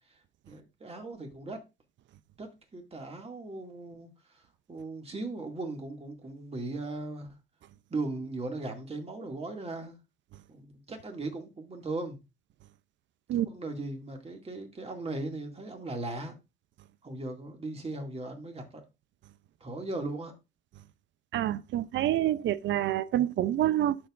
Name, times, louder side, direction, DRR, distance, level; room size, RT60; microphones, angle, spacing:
voice 1, 0.5-1.6 2.4-2.5 2.7-4.1 4.7-7.3 7.9-10.0 10.5-12.2 13.3-16.3 17.0-18.8 19.6-20.3, right 2 dB, 30° right, 2.2 m, -38 dB
voice 2, 21.3-24.0, right 12 dB, 70° right, 0.5 m, -27 dB
13.5 x 4.6 x 2.5 m
cardioid pair, 90°, 20 cm